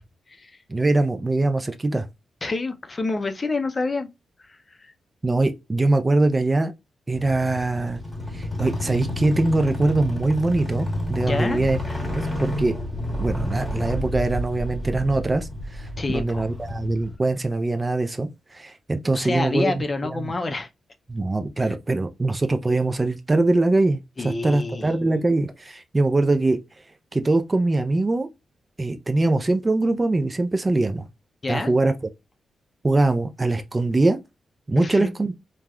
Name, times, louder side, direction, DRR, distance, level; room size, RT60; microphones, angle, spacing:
voice 1, 0.7-2.1 5.2-6.7 7.1-8.0 8.3-11.8 12.2-12.7 13.2-19.8 20.1-20.3 21.1-26.6 27.1-28.3 28.8-31.0 31.5-31.9 32.8-34.2 34.7-35.3, right 2 dB, 25° right, 0.3 m, -22 dB
voice 2, 2.4-4.1 4.4-4.8 11.3-12.0 16.0-16.5 19.1-20.7 24.2-24.9 31.4-31.7 34.8-35.1, left 3 dB, 35° left, 0.4 m, -28 dB
sound 1, 7.1-17.1, left 1 dB, 5° left, 1.1 m, -30 dB
3.4 x 2.1 x 2.2 m
cardioid pair, 75°, 0 cm